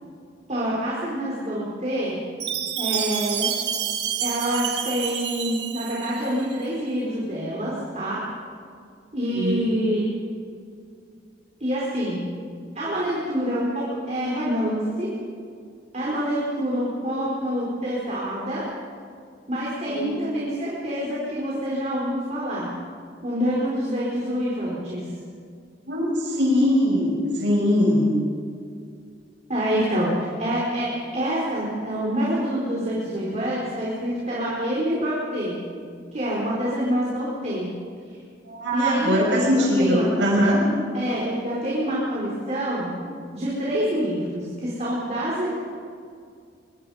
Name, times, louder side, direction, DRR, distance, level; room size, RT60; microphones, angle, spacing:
voice 1, 0.5-2.2 2.8-3.5 4.2-8.2 9.1-10.0 11.6-12.2 12.7-15.1 15.9-18.6 19.5-22.7 23.2-25.0 29.5-30.9 31.1-35.6 36.1-37.7 38.7-40.5 40.9-42.9 43.3-45.5, equal, 40° right, -6 dB, 4.6 m, -26 dB
Chime, 2.4-6.5, right 9 dB, 65° right, 1.9 m, -28 dB
voice 2, 9.3-9.7 19.9-20.2 25.9-28.1 38.5-40.6, equal, 80° right, -3 dB, 5.9 m, -21 dB
25.0 x 23.0 x 5.1 m, 2.3 s
head